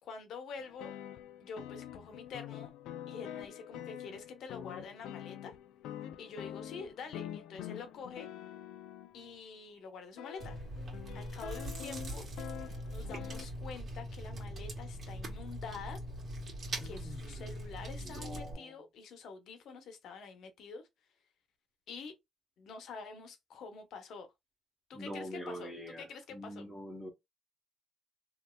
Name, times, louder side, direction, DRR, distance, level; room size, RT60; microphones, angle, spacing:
voice 1, 0.0-1.0 1.4-2.7 3.1-5.5 6.2-8.3 9.1-10.6 11.1-12.3 12.9-16.0 16.8-20.9 21.9-22.1 22.6-24.3 24.9-26.7, left 5 dB, 75° left, 1.0 m, -47 dB
sound 1, 0.6-9.4 10.2-13.5, left 11 dB, 90° left, 0.3 m, -46 dB
Chewing mastication, 10.4-18.5, right 1 dB, 45° right, 1.6 m, -42 dB
voice 2, 16.8-17.2 18.0-18.7 24.9-26.1 26.3-27.1, equal, 10° left, 1.1 m, -44 dB
3.3 x 2.7 x 2.3 m
cardioid pair, 90°, 0 cm